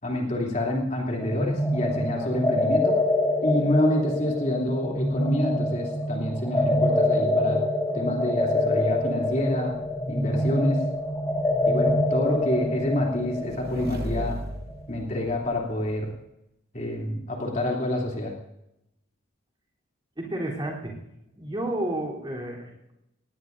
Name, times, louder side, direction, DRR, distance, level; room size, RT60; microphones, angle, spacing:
voice 1, 0.0-2.9 3.4-7.6 7.9-9.7 10.1-10.8 11.7-14.4 14.9-16.1 16.7-18.3, left 1 dB, 35° left, -1 dB, 3.1 m, -27 dB
sound 1, 1.2-14.8, left 1 dB, 10° left, 2.5 m, -26 dB
Motorcycle / Engine, 9.0-16.1, right 1 dB, 50° right, 1.0 m, -39 dB
voice 2, 20.2-21.0 21.3-22.9, right 1 dB, 20° right, -2 dB, 3.6 m, -31 dB
19.0 x 18.0 x 2.7 m, 0.83 s
head